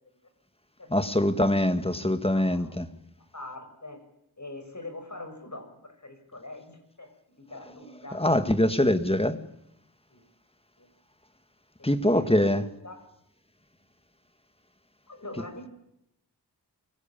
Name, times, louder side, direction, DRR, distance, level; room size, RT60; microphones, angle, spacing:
voice 1, 0.9-2.9 8.1-9.4 11.8-12.6, left 1 dB, 15° left, 2.0 m, -23 dB
voice 2, 2.3-2.9 3.2-4.0 4.4-8.2 10.1-10.2 10.8-10.9 11.8-13.0 15.1-15.7, left 2 dB, 45° left, 6.7 m, -43 dB
24.5 x 17.5 x 9.0 m
wide cardioid pair, 60°, 41 cm